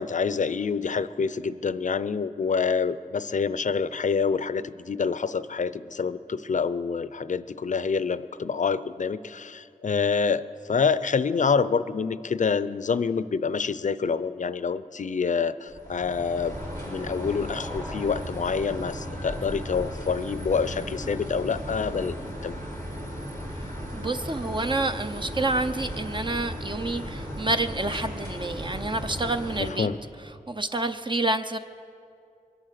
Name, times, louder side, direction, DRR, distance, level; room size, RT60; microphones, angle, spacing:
voice 1, 0.0-16.6 16.8-22.2 22.4-22.6 29.6-30.0, left 5 dB, 55° left, 15 dB, 0.5 m, -27 dB
sound 1, 15.7-29.7, equal, 85° right, 5.0 m, -36 dB
voice 2, 23.9-29.9 30.5-31.6, right 2 dB, 30° right, 7 dB, 0.6 m, -28 dB
23.0 x 8.7 x 6.7 m, 2.5 s
cardioid pair, 50°, 15 cm